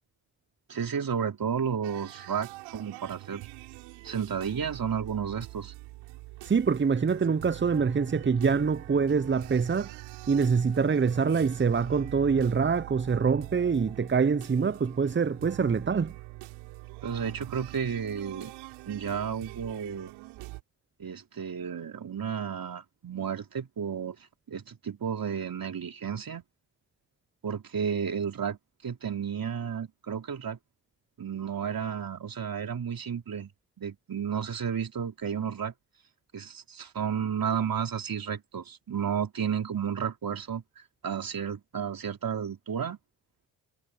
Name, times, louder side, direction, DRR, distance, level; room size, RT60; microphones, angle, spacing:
voice 1, 0.7-3.5 4.0-5.7 17.0-18.5 18.9-20.1 21.0-24.2 24.5-26.4 27.4-30.6 31.2-33.5 33.8-35.7 36.3-43.0, right 7 dB, 50° right, 3.9 m, -32 dB
sound 1, 1.8-20.6, right 20 dB, 80° right, 7.6 m, -44 dB
voice 2, 6.4-10.0 10.3-16.1, right 5 dB, 25° right, 0.9 m, -25 dB
hypercardioid pair, 45°, 44 cm